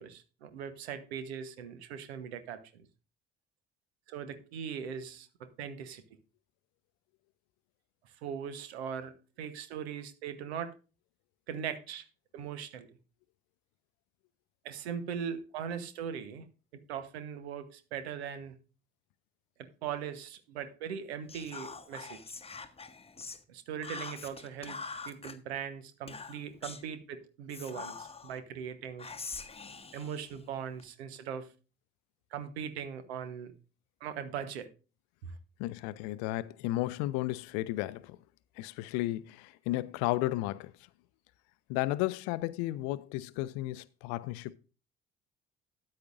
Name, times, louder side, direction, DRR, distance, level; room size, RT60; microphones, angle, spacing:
voice 1, 0.0-2.9 4.1-6.0 8.2-10.7 11.5-12.0 12.3-12.9 14.6-16.4 16.9-18.5 19.6-22.2 23.5-24.8 25.1-29.1 29.9-31.5 32.3-33.5 34.0-34.7, right 8 dB, 70° right, 1.1 m, -40 dB
Whispering, 21.3-23.4 23.8-25.4 26.1-26.9 27.5-28.4 29.0-30.9, left 4 dB, 20° left, 1.0 m, -44 dB
voice 2, 35.6-38.2 38.6-40.7 41.7-44.5, left 17 dB, 60° left, 0.6 m, -33 dB
13.0 x 9.5 x 2.5 m
figure-of-eight pair, 50°, 32 cm